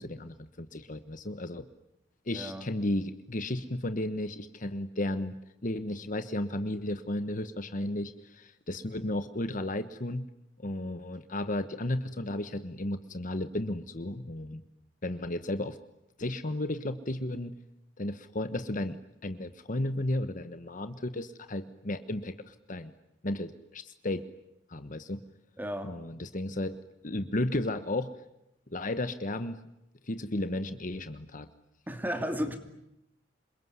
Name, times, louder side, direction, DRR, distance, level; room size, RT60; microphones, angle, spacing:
voice 1, 0.0-1.6 2.3-5.3 5.6-10.2 10.6-14.6 15.0-15.8 16.2-17.6 18.0-19.0 19.2-22.9 23.2-24.2 24.7-25.2 25.8-26.8 27.0-28.1 28.7-29.6 30.0-31.5, left 1 dB, 45° left, 10 dB, 1.2 m, -33 dB
voice 2, 2.3-2.7 25.6-25.9 31.9-32.6, equal, 10° right, 6 dB, 2.5 m, -33 dB
27.5 x 22.0 x 9.6 m, 0.83 s
head